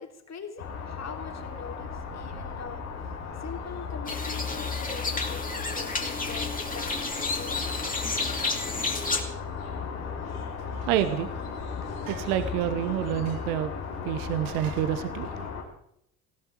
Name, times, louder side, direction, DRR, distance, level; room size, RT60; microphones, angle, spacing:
voice 1, 0.0-2.8 3.4-8.1, left 5 dB, 35° left, 4 dB, 3.2 m, -43 dB
sound 1, 0.6-15.6, left 5 dB, 80° left, 4.3 m, -36 dB
sound 2, 4.1-9.2, left 3 dB, 20° left, 2.8 m, -31 dB
voice 2, 10.8-11.3 12.1-13.7 14.0-15.5, right 11 dB, 75° right, 11 dB, 1.2 m, -28 dB
19.5 x 15.5 x 4.7 m, 0.73 s
hypercardioid pair, 55°, 43 cm